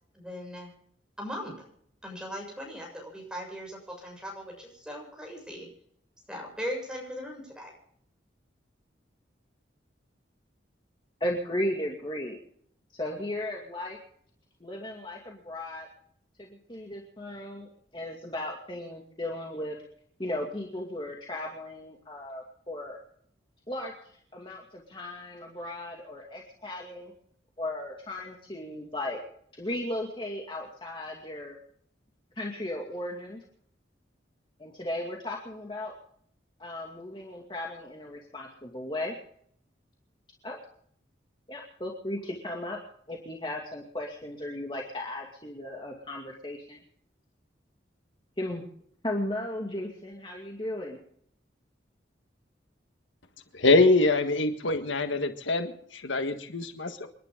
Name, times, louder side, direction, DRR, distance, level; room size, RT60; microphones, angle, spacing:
voice 1, 0.1-0.7 1.2-1.6 2.0-5.7 6.3-7.7, equal, 5° right, 0 dB, 7.0 m, -39 dB
voice 2, 11.2-12.4 12.9-14.0 14.6-15.9 16.4-19.8 20.2-23.0 23.7-23.9 24.3-27.1 27.6-29.2 29.6-31.6 32.4-33.4 34.6-35.9 36.6-39.2 40.4-40.6 41.5-42.8 43.1-46.8 48.4-48.6 49.0-51.0, left 1 dB, 25° left, -1 dB, 2.4 m, -36 dB
voice 3, 53.5-57.1, left 2 dB, 90° left, 7 dB, 1.6 m, -24 dB
28.5 x 11.0 x 3.8 m, 0.65 s
head